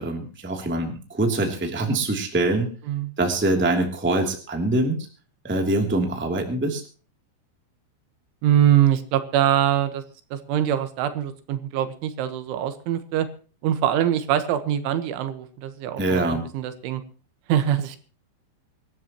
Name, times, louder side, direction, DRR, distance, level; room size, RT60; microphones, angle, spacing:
voice 1, 0.0-2.7 3.2-5.0 5.4-6.8 16.0-16.4, right 2 dB, 5° right, 3 dB, 1.5 m, -24 dB
voice 2, 8.4-10.0 10.3-13.3 13.6-17.0 17.5-18.0, right 11 dB, 85° right, 10 dB, 3.8 m, -23 dB
24.5 x 13.0 x 3.0 m, 0.37 s
omnidirectional pair, 5.4 m